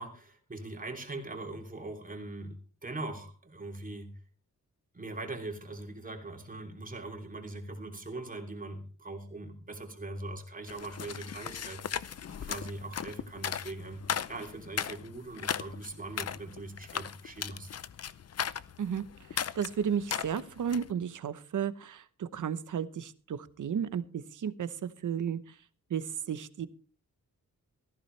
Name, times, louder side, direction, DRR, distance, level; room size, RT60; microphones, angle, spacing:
voice 1, 0.0-4.1 4.9-12.1 12.4-17.8, right 2 dB, 25° right, 3 dB, 3.0 m, -41 dB
sound 1, 10.7-20.9, left 8 dB, 50° left, 0.7 m, -37 dB
voice 2, 19.3-25.6 25.9-26.7, right 8 dB, 70° right, 14 dB, 1.0 m, -33 dB
17.5 x 14.5 x 3.3 m, 0.36 s
wide cardioid pair, 135°, 32 cm